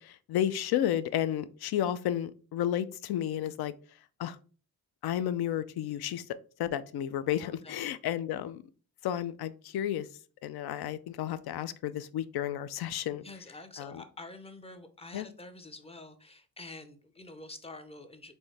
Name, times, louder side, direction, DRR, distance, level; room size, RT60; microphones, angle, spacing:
voice 1, 0.0-3.7 4.2-4.4 5.0-6.2 6.6-8.6 9.0-10.1 10.4-13.2 13.8-14.0 15.1-15.3, left 11 dB, 75° left, 0.5 m, -32 dB
voice 2, 7.3-7.9 13.2-18.3, left 2 dB, 15° left, 0.5 m, -47 dB
4.4 x 3.1 x 3.3 m
cardioid pair, 130°, 38 cm